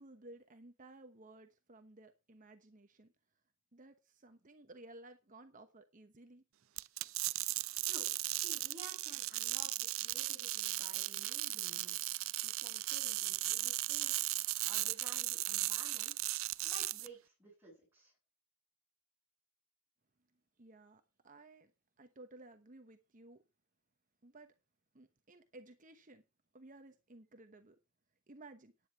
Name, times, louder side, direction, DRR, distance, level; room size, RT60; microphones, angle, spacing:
voice 1, 0.0-3.1 3.7-6.4 20.6-21.7 22.0-23.4 24.2-24.5 24.9-26.2 26.5-27.8 28.3-28.7, right 2 dB, 35° right, 1.0 m, -56 dB
sound 1, 6.8-17.1, right 18 dB, 65° right, 0.5 m, -37 dB
voice 2, 7.8-16.3 16.6-18.1, right 1 dB, 10° right, 6.6 m, -56 dB
10.5 x 9.4 x 4.5 m
head